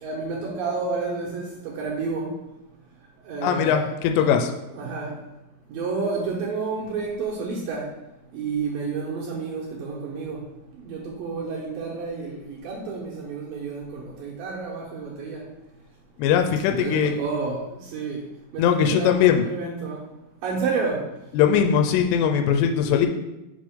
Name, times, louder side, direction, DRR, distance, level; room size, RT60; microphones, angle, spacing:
voice 1, 0.0-2.3 3.3-4.4 4.7-5.2 5.7-7.9 8.3-10.4 10.8-15.4 16.7-18.3 18.5-20.0 20.4-21.0, right 4 dB, 75° right, -4 dB, 2.3 m, -30 dB
voice 2, 3.4-4.5 16.2-17.2 18.6-19.4 21.3-23.1, left 8 dB, 90° left, 5 dB, 2.7 m, -20 dB
6.0 x 5.1 x 3.5 m, 0.96 s
omnidirectional pair, 4.8 m